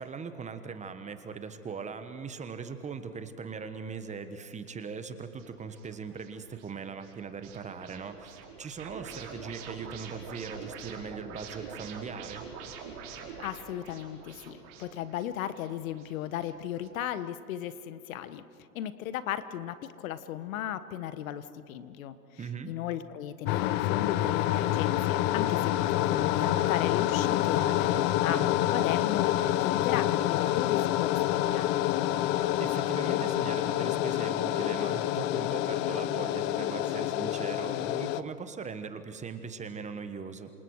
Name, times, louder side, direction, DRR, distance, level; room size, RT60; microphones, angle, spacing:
voice 1, 0.0-12.5 22.4-22.7 27.9-28.5 32.6-40.5, right 5 dB, 15° right, 9 dB, 1.3 m, -40 dB
sound 1, 5.4-16.9, right 6 dB, 45° right, 4.7 m, -46 dB
voice 2, 13.4-18.4 18.7-22.2 22.7-31.8, left 11 dB, 55° left, 13 dB, 1.4 m, -35 dB
sound 2, 23.5-38.2, left 13 dB, 25° left, 0.5 m, -27 dB
27.5 x 27.5 x 4.8 m, 2.7 s
hypercardioid pair, 115°, 48 cm